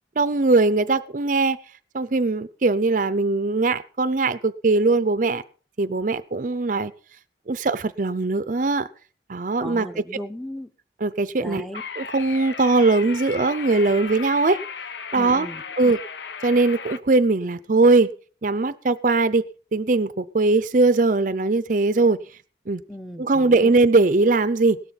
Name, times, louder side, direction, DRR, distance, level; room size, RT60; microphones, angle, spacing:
voice 1, 0.2-1.6 1.9-5.4 5.8-6.9 7.5-8.9 9.3-10.0 11.0-11.7 12.0-14.6 15.1-15.5 15.8-16.0 16.4-18.1 18.4-19.4 19.7-22.2 22.7-22.8 23.2-24.8, right 3 dB, 45° right, 0.5 m, -20 dB
voice 2, 9.6-10.7 11.4-11.8 15.1-15.9 22.9-23.7, equal, ahead, 0.8 m, -36 dB
sound 1, 11.7-17.0, left 6 dB, 75° left, 0.8 m, -36 dB
17.5 x 13.0 x 4.1 m
head